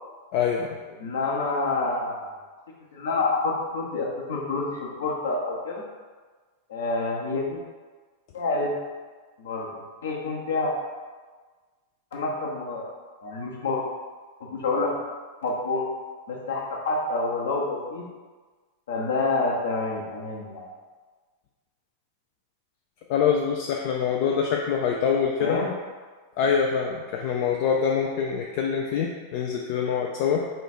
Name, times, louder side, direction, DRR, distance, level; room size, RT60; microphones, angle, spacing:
voice 1, 0.3-0.7 23.1-25.6 26.4-30.5, left 7 dB, 45° left, 0 dB, 0.3 m, -25 dB
voice 2, 1.0-2.3 2.9-5.8 6.7-7.6 8.3-8.7 9.4-9.7 10.0-10.7 12.1-12.9 13.2-13.8 14.4-15.0 15.4-15.8 16.3-18.0 18.9-20.7 25.4-25.7, left 3 dB, 65° left, -2 dB, 0.8 m, -27 dB
3.7 x 2.4 x 4.2 m, 1.4 s
figure-of-eight pair, 90°, 0 cm